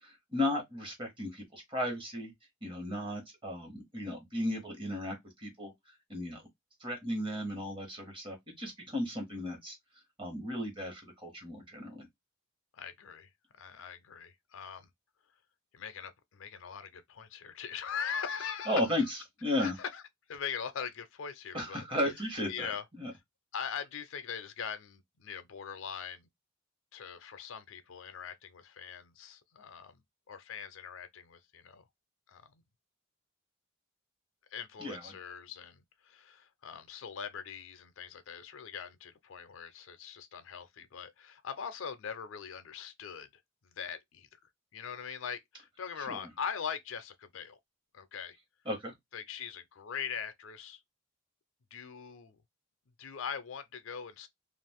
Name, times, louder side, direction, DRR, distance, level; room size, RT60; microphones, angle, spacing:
voice 1, 0.0-2.3 2.6-5.7 6.1-6.4 6.8-9.7 10.2-12.1 18.7-19.8 21.5-22.7 23.0-23.1 34.8-35.1 46.1-46.3 48.6-48.9, left 1 dB, 25° right, 1.2 m, -35 dB
voice 2, 12.7-14.9 15.7-18.8 19.6-20.0 20.3-21.8 22.5-22.8 23.5-26.3 26.9-30.0 30.3-31.8 32.3-32.5 34.5-43.3 43.6-44.3 44.7-47.6 47.9-48.4 49.1-50.8 51.7-52.4 53.0-54.3, left 7 dB, 75° left, 0.5 m, -41 dB
2.4 x 2.4 x 3.4 m
head